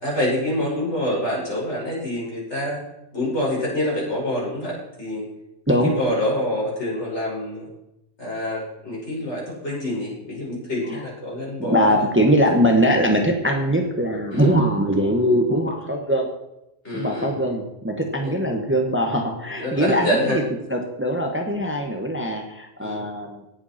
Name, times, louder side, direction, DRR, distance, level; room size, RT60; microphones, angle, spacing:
voice 1, 0.0-2.8 3.1-5.3 5.8-7.7 8.2-12.3 14.3-14.5 16.8-17.3 18.2-18.3 19.6-20.4 22.8-23.0, left 1 dB, 60° left, -4 dB, 5.9 m, -26 dB
voice 2, 11.6-16.3 16.9-20.4 20.7-23.4, equal, 10° right, 3 dB, 1.4 m, -21 dB
18.0 x 8.2 x 4.4 m, 0.90 s
omnidirectional pair, 1.3 m